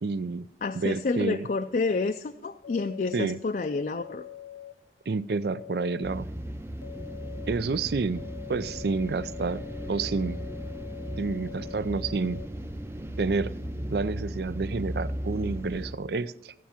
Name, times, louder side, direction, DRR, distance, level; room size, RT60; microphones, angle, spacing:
voice 1, 0.0-0.5 0.7-1.5 3.1-3.4 5.1-6.3 7.5-8.2 8.5-10.4 11.2-12.4 13.2-13.5 13.9-16.5, right 4 dB, 65° right, 17 dB, 0.5 m, -29 dB
voice 2, 0.6-4.2, left 3 dB, 45° left, 7 dB, 0.4 m, -29 dB
sound 1, 2.6-3.4 4.0-4.7 5.5-6.2 6.8-7.5 8.2-12.5, left 11 dB, 90° left, 0.8 m, -44 dB
sound 2, 6.0-16.0, equal, 15° right, 0.5 m, -36 dB
13.0 x 9.3 x 4.4 m, 0.94 s
head